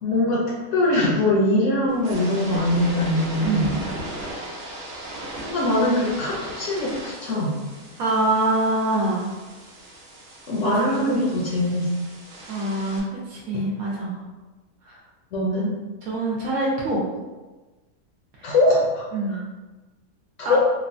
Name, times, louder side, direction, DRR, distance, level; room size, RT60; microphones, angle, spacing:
voice 1, 0.0-3.8 5.4-7.6 10.5-11.9 13.5-13.6 15.3-15.7 18.4-19.4 20.4-20.6, left 1 dB, 65° left, -4 dB, 0.8 m, -22 dB
sound 1, 1.9-13.0, right 1 dB, 60° right, 0.7 m, -37 dB
voice 2, 3.4-3.7 8.0-9.3 10.6-11.2 12.5-14.2 14.8-15.0 16.0-17.0 18.4-18.5 19.1-19.4 20.4-20.6, right 2 dB, 75° right, -4 dB, 1.0 m, -25 dB
3.1 x 2.1 x 2.5 m, 1.2 s
omnidirectional pair, 1.5 m